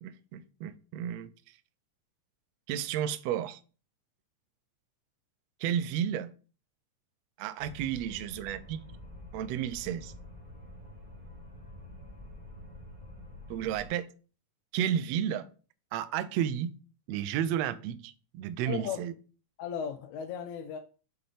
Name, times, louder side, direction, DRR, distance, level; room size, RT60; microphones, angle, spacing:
voice 1, 0.0-1.3 2.7-3.6 5.6-6.3 7.4-8.8 9.3-10.1 13.5-14.1 14.7-15.5 15.9-16.8 17.1-19.1, right 10 dB, 80° right, 1.6 m, -32 dB
sound 1, 7.6-13.9, left 1 dB, 15° right, 2.7 m, -47 dB
voice 2, 18.7-19.0 19.6-20.8, left 8 dB, 85° left, 2.0 m, -36 dB
6.3 x 5.6 x 3.4 m
omnidirectional pair, 3.4 m